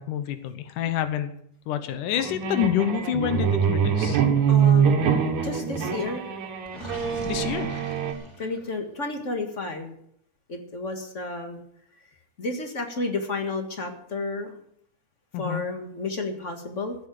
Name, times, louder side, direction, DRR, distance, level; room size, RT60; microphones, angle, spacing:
voice 1, 0.0-1.3 1.7-4.2 7.3-7.9 15.3-15.6, left 10 dB, 90° left, 10 dB, 2.6 m, -27 dB
sound 1, 2.2-8.1, right 7 dB, 70° right, 2.7 m, -24 dB
voice 2, 4.5-5.0 5.4-6.3 8.4-9.9 10.5-11.6 12.4-14.5 15.4-17.0, left 3 dB, 30° left, 5 dB, 1.5 m, -31 dB
Gurgling, 6.7-8.8, left 1 dB, 10° left, 2.8 m, -39 dB
15.0 x 7.9 x 7.5 m, 0.70 s
omnidirectional pair, 3.5 m